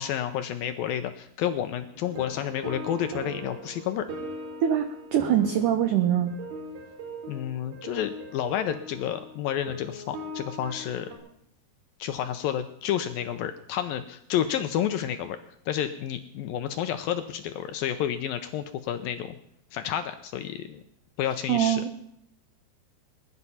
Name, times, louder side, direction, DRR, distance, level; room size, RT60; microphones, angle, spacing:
voice 1, 0.0-4.1 7.3-11.1 12.0-15.4 15.7-19.4 19.7-20.8 21.2-21.8, left 10 dB, 80° left, 8 dB, 2.2 m, -30 dB
sound 1, 1.9-11.2, equal, 70° right, 5.0 m, -40 dB
voice 2, 4.6-6.3 21.5-22.0, right 10 dB, 90° right, 8 dB, 1.8 m, -24 dB
21.0 x 11.5 x 5.6 m, 0.73 s
omnidirectional pair, 4.8 m